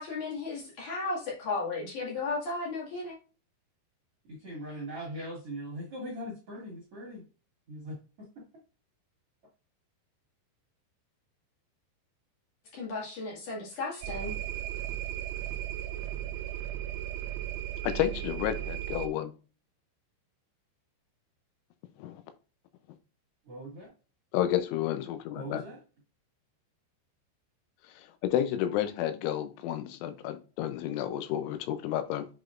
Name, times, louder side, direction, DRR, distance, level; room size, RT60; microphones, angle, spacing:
voice 1, 0.0-3.2 12.7-14.3, left 3 dB, 50° left, -4 dB, 2.9 m, -34 dB
voice 2, 4.3-7.2 7.7-8.3 23.5-23.9 25.3-25.8, equal, 50° right, -2 dB, 1.8 m, -40 dB
sound 1, 14.0-19.1, right 12 dB, 85° right, 2.3 m, -36 dB
voice 3, 17.8-19.3 22.0-22.2 24.3-25.6 28.2-32.3, left 11 dB, 85° left, 9 dB, 3.1 m, -31 dB
7.8 x 5.1 x 2.5 m, 0.34 s
omnidirectional pair, 5.4 m